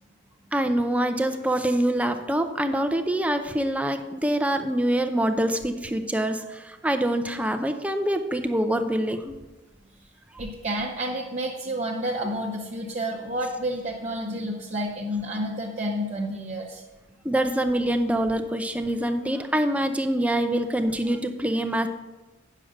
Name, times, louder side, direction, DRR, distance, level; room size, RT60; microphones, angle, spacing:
voice 1, 0.5-9.3 17.2-21.9, right 1 dB, 5° right, 7 dB, 0.6 m, -25 dB
voice 2, 10.4-16.8, equal, 40° right, -4 dB, 0.9 m, -30 dB
9.3 x 6.6 x 5.0 m, 1.1 s
head